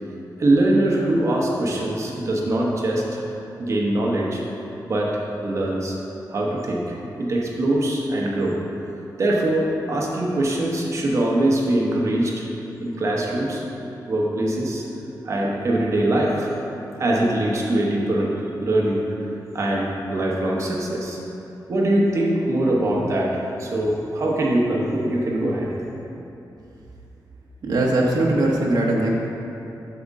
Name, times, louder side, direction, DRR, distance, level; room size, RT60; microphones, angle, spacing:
voice 1, 0.4-3.2 3.6-4.4 4.8-6.0 6.3-8.6 9.2-12.4 12.8-13.6 14.1-14.8 15.2-16.5 17.0-19.1 19.5-21.2 21.7-23.3 23.6-25.8, right 1 dB, 45° right, -3 dB, 1.0 m, -22 dB
voice 2, 27.6-29.1, right 1 dB, 70° right, -3 dB, 0.8 m, -20 dB
7.9 x 6.6 x 3.6 m, 2.9 s
wide cardioid pair, 175°, 7 cm